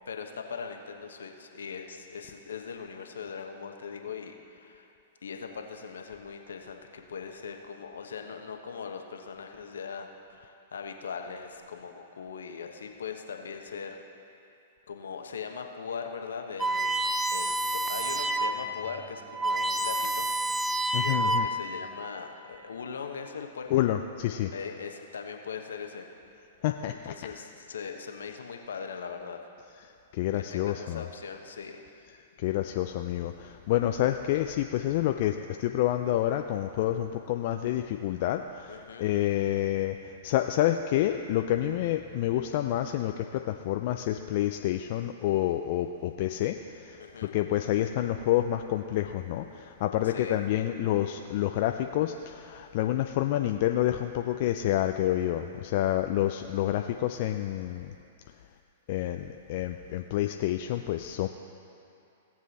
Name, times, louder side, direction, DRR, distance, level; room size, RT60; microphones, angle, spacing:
voice 1, 0.1-4.9 5.2-14.0 14.9-17.0 17.3-20.3 21.0-23.9 24.5-26.1 26.9-29.4 30.3-31.8 38.7-39.1 47.0-47.4 50.0-50.4, left 6 dB, 80° left, 4 dB, 1.1 m, -40 dB
sound 1, 16.6-18.6 19.0-19.1 19.3-21.7, right 2 dB, 10° right, 0.5 m, -28 dB
voice 2, 20.9-21.5 23.7-24.5 26.6-27.2 30.1-31.0 32.4-57.9 58.9-61.3, left 13 dB, 55° left, 6 dB, 0.4 m, -28 dB
17.5 x 7.4 x 4.2 m, 2.6 s
hypercardioid pair, 115°, 0 cm